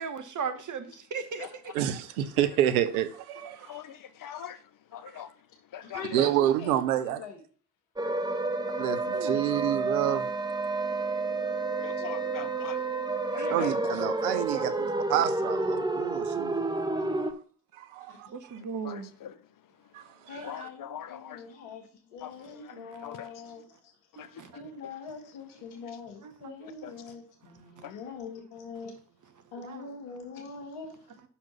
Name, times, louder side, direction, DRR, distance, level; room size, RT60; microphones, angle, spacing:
voice 1, 0.0-1.8 9.1-9.4 13.4-13.8 14.5-14.9 18.3-19.1 22.7-22.9 24.4-24.6 26.2-26.5 29.6-29.8, right 6 dB, 45° right, 1.1 m, -37 dB
voice 2, 1.7-3.8 6.1-7.2 8.8-10.3 13.5-14.7 15.1-16.6 17.1-17.2 17.7-18.3 19.9-20.4, right 11 dB, 85° right, 0.6 m, -28 dB
voice 3, 3.6-4.6 4.9-5.3 5.7-6.2 11.8-12.8 13.3-13.7 18.8-19.3 20.4-21.4 22.2-22.3 23.0-23.3 24.2-24.3 26.8-26.9 27.8-27.9, left 10 dB, 50° left, 0.8 m, -41 dB
voice 4, 5.8-7.4 9.4-9.5 10.0-10.3 12.0-12.1 18.1-18.2 20.3-23.9 24.5-29.0 29.5-31.0, left 5 dB, 75° left, 1.6 m, -43 dB
sound 1, 8.0-17.3, right 3 dB, 10° right, 0.7 m, -30 dB
5.9 x 4.2 x 5.9 m
hypercardioid pair, 40°, 43 cm